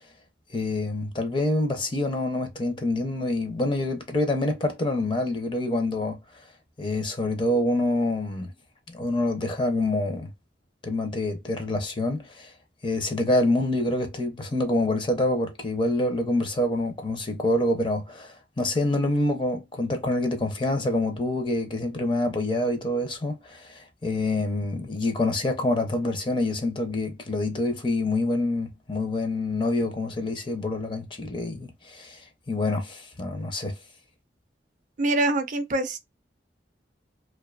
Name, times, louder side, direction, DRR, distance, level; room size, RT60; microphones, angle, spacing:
voice 1, 0.5-6.2 6.8-8.5 8.9-10.3 10.8-12.5 12.8-33.7, left 2 dB, 30° left, 0.5 m, -26 dB
voice 2, 35.0-36.0, right 2 dB, 45° right, 0.4 m, -24 dB
2.5 x 2.2 x 2.3 m
head